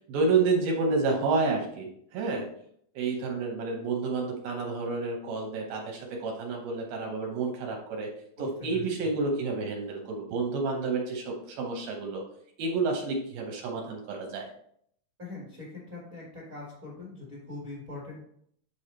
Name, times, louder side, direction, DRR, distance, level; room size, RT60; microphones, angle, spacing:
voice 1, 0.0-2.5 3.0-8.1 8.4-12.2 12.6-14.4, right 3 dB, 70° right, 1 dB, 2.4 m, -29 dB
voice 2, 8.4-9.1 15.2-18.2, left 2 dB, 35° right, -5 dB, 1.4 m, -42 dB
8.0 x 3.5 x 4.3 m, 0.68 s
omnidirectional pair, 4.9 m